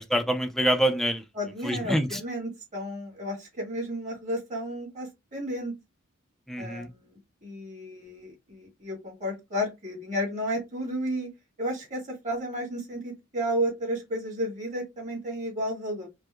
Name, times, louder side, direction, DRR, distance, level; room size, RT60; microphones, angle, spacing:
voice 1, 0.0-1.2 1.6-2.2 6.5-6.9, equal, ahead, 0.4 m, -26 dB
voice 2, 1.4-5.7 6.6-11.3 11.6-16.1, equal, 40° right, 1.8 m, -32 dB
4.6 x 2.1 x 2.2 m
head